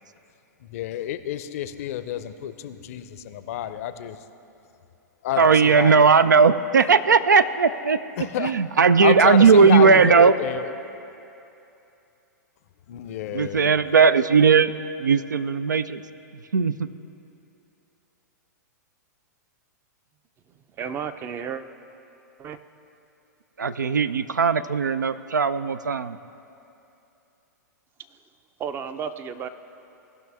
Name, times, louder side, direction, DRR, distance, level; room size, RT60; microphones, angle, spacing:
voice 1, 0.7-4.2 5.2-6.1 8.2-8.5 9.0-10.7 12.9-13.8, left 11 dB, 55° left, 11 dB, 0.5 m, -29 dB
voice 2, 5.4-10.3 13.3-14.7 15.0-16.0 16.5-16.9 23.6-26.2, right 5 dB, 85° right, 14 dB, 0.4 m, -18 dB
voice 3, 20.8-21.6 22.4-22.6 28.6-29.5, right 7 dB, 25° right, 11 dB, 0.5 m, -32 dB
18.0 x 5.9 x 3.5 m, 2.8 s
figure-of-eight pair, 110°, 10 cm